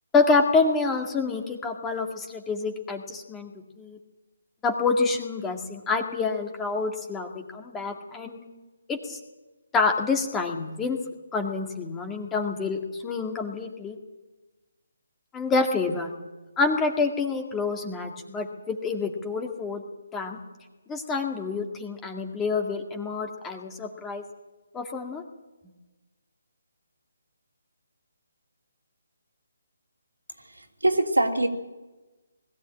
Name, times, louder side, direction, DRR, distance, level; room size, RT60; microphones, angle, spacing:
voice 1, 0.1-3.5 3.8-4.0 4.6-8.4 8.9-9.2 9.7-11.0 11.3-14.0 15.3-16.1 16.6-19.8 20.1-20.4 20.9-24.2 24.7-25.2, left 4 dB, 10° left, 4 dB, 2.0 m, -27 dB
voice 2, 30.4-31.5, right 2 dB, 90° right, 2 dB, 3.0 m, -24 dB
20.5 x 15.0 x 8.9 m, 1.2 s
figure-of-eight pair, 150°, 0 cm